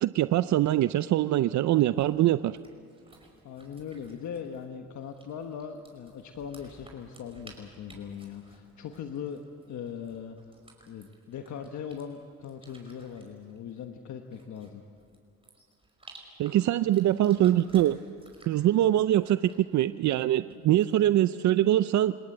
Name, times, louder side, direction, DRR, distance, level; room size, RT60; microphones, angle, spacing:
voice 1, 0.0-2.6 16.4-18.0 18.5-22.1, right 13 dB, 70° right, 14 dB, 0.6 m, -23 dB
sound 1, 1.9-21.1, right 2 dB, 20° right, 5.5 m, -57 dB
voice 2, 3.4-9.4 9.7-10.4 10.9-14.8, left 7 dB, 70° left, 5 dB, 1.3 m, -40 dB
28.5 x 17.5 x 7.9 m, 2.5 s
cardioid pair, 90°, 30 cm